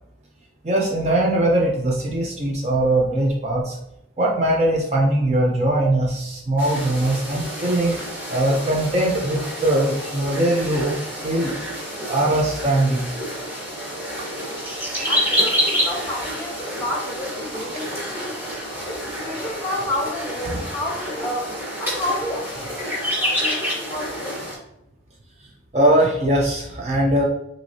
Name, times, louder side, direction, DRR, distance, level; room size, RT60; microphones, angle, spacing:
voice 1, 0.6-3.8 4.2-8.0 8.3-11.5 12.1-13.1 25.7-27.2, right 1 dB, 35° right, -2 dB, 0.6 m, -21 dB
sound 1, 6.6-24.6, equal, 10° right, 1.3 m, -28 dB
voice 2, 15.1-18.4 18.8-21.5 21.8-24.5, left 1 dB, 10° left, -2 dB, 1.3 m, -30 dB
6.0 x 2.7 x 2.7 m, 0.82 s
head